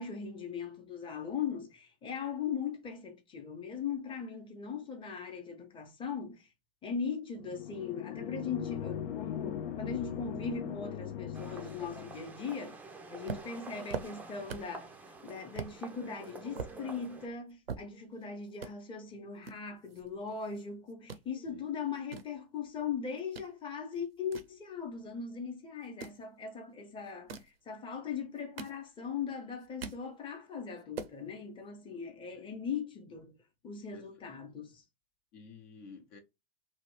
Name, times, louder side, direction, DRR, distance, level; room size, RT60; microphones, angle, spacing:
voice 1, 0.0-6.5 6.8-12.8 13.1-14.9 15.2-33.3 33.6-34.8, left 6 dB, 15° left, 0.9 m, -39 dB
sound 1, 7.3-12.3, left 9 dB, 70° left, 0.5 m, -39 dB
sound 2, 11.3-17.3, right 3 dB, 5° right, 0.4 m, -48 dB
sound 3, 13.3-14.8 15.2-15.3 15.6-15.8 16.2-18.2 18.5-18.7 19.4-20.6 20.9-21.3 21.8-23.5 23.9-25.2 25.8-26.2 27.1-27.6 28.2-29.2 29.5-30.1 30.5-30.6 30.8-31.2, right 5 dB, 90° right, 0.5 m, -43 dB
voice 2, 33.9-34.4 35.3-36.2, left 4 dB, 50° left, 0.8 m, -53 dB
2.9 x 2.3 x 3.0 m
figure-of-eight pair, 95°, 29 cm